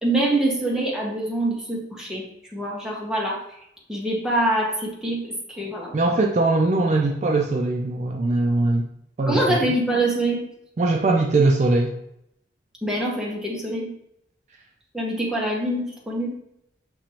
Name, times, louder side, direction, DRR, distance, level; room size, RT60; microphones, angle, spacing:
voice 1, 0.0-2.2 2.5-3.4 3.9-5.9 9.3-10.4 12.8-13.9 14.9-16.3, right 1 dB, 5° right, -3 dB, 0.9 m, -25 dB
voice 2, 5.9-8.9 9.2-9.8 10.8-11.9, right 2 dB, 40° right, 1 dB, 0.4 m, -21 dB
6.1 x 2.9 x 2.9 m, 0.77 s
head